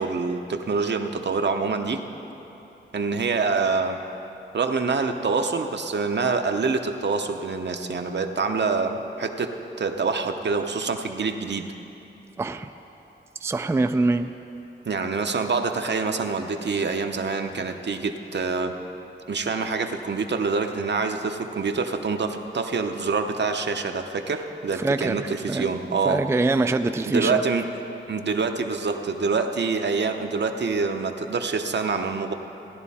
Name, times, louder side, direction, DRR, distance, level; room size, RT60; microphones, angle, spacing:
voice 1, 0.0-2.0 2.9-4.0 4.5-11.7 14.9-18.7 19.3-26.2 27.1-27.7 28.1-32.3, right 4 dB, 65° right, 5 dB, 0.8 m, -26 dB
voice 2, 12.4-12.7 13.4-14.3 24.7-25.7 26.1-27.4, right 2 dB, 15° right, 8 dB, 0.3 m, -24 dB
17.0 x 11.0 x 4.2 m, 3.0 s
wide cardioid pair, 80°, 20 cm